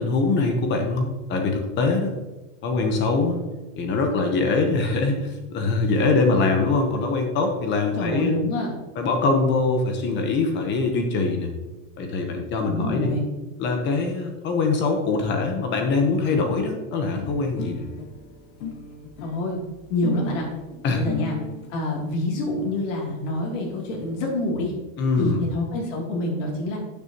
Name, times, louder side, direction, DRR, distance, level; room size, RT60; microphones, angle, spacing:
voice 1, 0.0-2.1 2.6-3.4 3.8-8.4 9.0-11.5 12.0-13.1 13.6-17.8 20.8-21.0 25.0-25.4, left 3 dB, 25° left, 4 dB, 1.0 m, -23 dB
voice 2, 8.0-8.7 12.7-13.3 19.2-19.6 19.9-20.4 20.9-21.4 21.7-24.7 25.2-26.8, left 1 dB, 65° left, -2 dB, 2.9 m, -26 dB
sound 1, 17.1-21.7 22.6-22.7 22.9-23.0 23.2-23.3 23.5-24.2, left 5 dB, 90° left, 1.3 m, -37 dB
11.5 x 7.0 x 2.9 m, 1.1 s
supercardioid pair, 160°, 41 cm